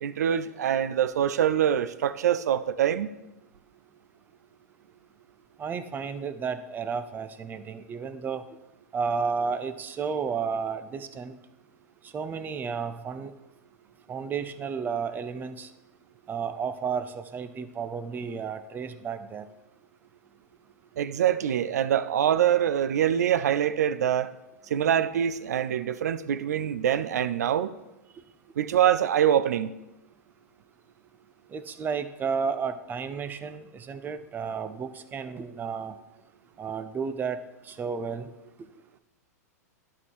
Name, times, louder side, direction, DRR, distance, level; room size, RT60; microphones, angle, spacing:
voice 1, 0.0-3.1 21.0-24.3 24.7-27.7 28.6-29.7, right 10 dB, 70° right, 0.5 m, -24 dB
voice 2, 5.6-8.4 8.9-11.4 12.1-13.3 14.1-15.7 16.3-19.5 31.5-35.9 36.6-37.4 37.7-38.3, right 6 dB, 20° right, 0.6 m, -32 dB
11.0 x 3.8 x 6.3 m
hypercardioid pair, 105°, 9 cm